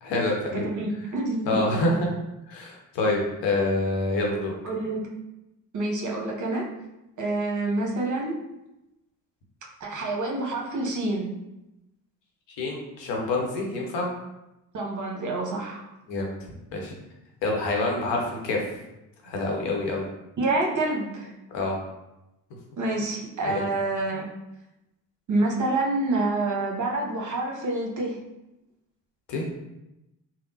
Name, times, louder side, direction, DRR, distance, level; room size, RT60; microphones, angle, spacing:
voice 1, 0.0-0.7 1.4-2.1 2.5-4.5 12.6-14.1 16.1-16.3 16.7-16.9 17.4-18.6 19.2-20.1 21.5-21.7 23.5-23.7 29.3-29.4, left 2 dB, 65° left, -1 dB, 0.9 m, -26 dB
voice 2, 0.5-1.8 4.6-5.1 5.7-6.6 7.2-8.3 9.8-11.3 14.7-15.8 20.4-21.3 22.8-24.3 25.3-28.2, right 2 dB, 40° right, -1 dB, 0.8 m, -27 dB
3.4 x 2.1 x 2.8 m, 0.94 s
hypercardioid pair, 50°, 47 cm